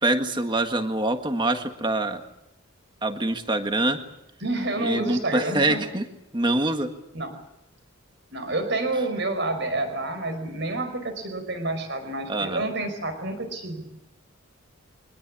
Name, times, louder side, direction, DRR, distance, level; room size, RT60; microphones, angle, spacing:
voice 1, 0.0-2.2 3.0-4.0 4.8-6.1 6.3-6.9 8.9-9.1 12.3-12.7, right 2 dB, 20° right, 6 dB, 1.7 m, -25 dB
voice 2, 4.4-5.8 7.1-7.3 8.3-13.8, right 2 dB, 55° right, 8 dB, 5.2 m, -29 dB
24.5 x 19.5 x 8.6 m, 0.84 s
head